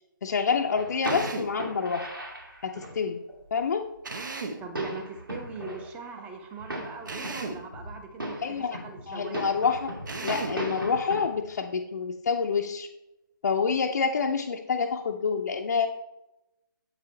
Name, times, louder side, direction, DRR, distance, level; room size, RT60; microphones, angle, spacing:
voice 1, 0.2-2.1 2.6-3.2 3.5-3.8 8.4-8.8 9.1-9.9 10.2-12.9 13.4-15.9, left 5 dB, 50° left, 2 dB, 0.5 m, -27 dB
sound 1, 0.7-3.0 3.3-3.4 3.6-3.7 4.1-4.2 4.5-5.9 6.2-6.3 6.6-8.0 8.2-11.5, equal, 85° right, 2.1 m, -37 dB
Drill, 1.0-1.6 4.0-4.7 7.1-7.7 10.1-10.7, right 3 dB, 60° right, 0.8 m, -35 dB
voice 2, 4.6-9.5, right 4 dB, 10° right, 5 dB, 0.6 m, -41 dB
7.5 x 4.8 x 3.3 m, 0.91 s
figure-of-eight pair, 145°, 11 cm